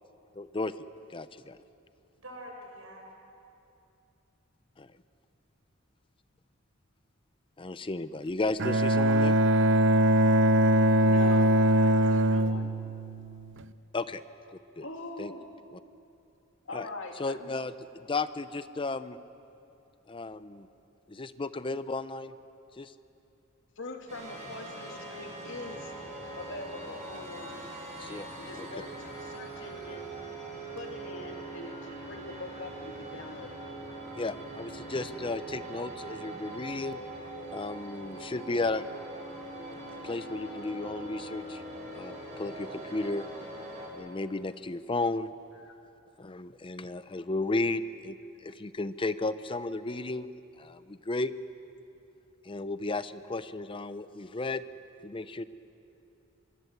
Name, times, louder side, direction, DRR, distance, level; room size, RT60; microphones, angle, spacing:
voice 1, 0.4-0.7 1.1-1.6 4.8-4.9 7.6-9.3 13.9-14.2 14.5-14.8 15.2-15.3 15.7-15.8 16.7-16.9 17.2-19.2 20.1-20.7 21.1-22.3 22.8-22.9 28.0-28.3 28.6-28.7 34.1-37.0 37.5-38.8 40.0-41.6 41.9-43.2 43.9-45.3 46.2-48.2 48.4-50.3 50.6-51.3 52.4-54.6 55.0-55.4, left 2 dB, 25° left, 13 dB, 0.6 m, -34 dB
voice 2, 2.2-3.0 8.9-11.2 39.9-40.0, equal, 85° right, 0 dB, 6.8 m, -48 dB
Bowed string instrument, 8.6-13.6, right 1 dB, 60° right, 0.7 m, -22 dB
voice 3, 11.0-12.7 14.8-15.5 16.6-17.6 23.8-25.9 26.4-27.7 28.4-30.1 30.7-33.6 45.6-45.7, left 2 dB, 65° left, 3 dB, 2.7 m, -43 dB
sound 1, 24.1-43.9, right 2 dB, 35° right, 7.8 m, -42 dB
24.5 x 23.0 x 8.0 m, 2.7 s
head